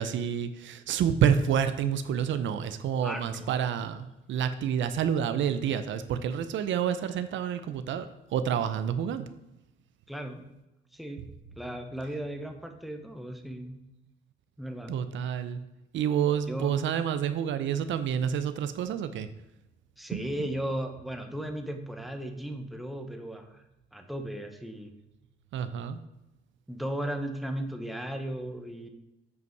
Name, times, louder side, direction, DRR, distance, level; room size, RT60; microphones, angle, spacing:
voice 1, 0.0-9.3 14.9-15.6 15.9-19.3 20.1-20.5 25.5-26.0, right 8 dB, 75° right, 11 dB, 0.6 m, -28 dB
voice 2, 3.0-3.5 10.1-10.4 10.9-11.2 11.6-13.8 14.6-15.0 16.5-16.7 20.0-23.6 23.9-24.9 26.7-28.9, right 1 dB, ahead, 5 dB, 1.1 m, -36 dB
8.2 x 5.3 x 4.6 m, 0.95 s
cardioid pair, 90°, 20 cm